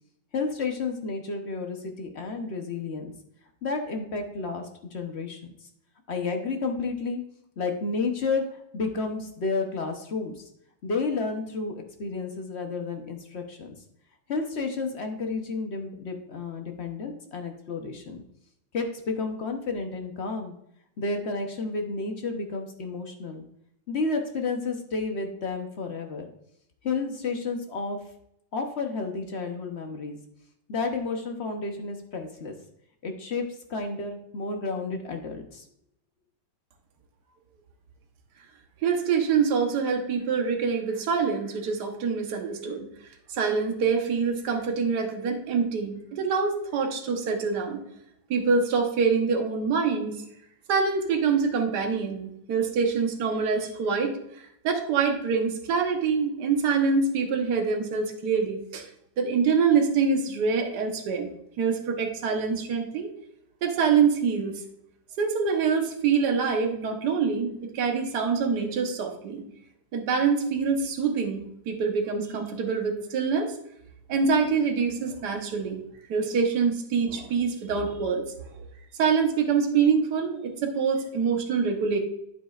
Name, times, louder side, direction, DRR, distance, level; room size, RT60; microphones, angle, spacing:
voice 1, 0.3-3.1 3.6-5.5 6.1-7.2 7.6-10.4 10.8-13.8 14.3-18.2 18.7-20.5 21.0-23.4 23.9-26.3 26.8-28.0 28.5-30.2 30.7-32.5 33.0-35.7, left 4 dB, 50° left, 4 dB, 0.8 m, -31 dB
voice 2, 38.8-42.9 43.3-47.8 48.3-50.2 50.7-54.2 54.6-58.9 59.2-61.3 61.6-63.1 63.6-64.6 65.2-69.4 69.9-73.6 74.1-75.8 76.1-78.2 79.0-82.0, right 5 dB, 60° right, 3 dB, 1.6 m, -25 dB
9.3 x 8.4 x 2.4 m, 0.75 s
omnidirectional pair, 2.2 m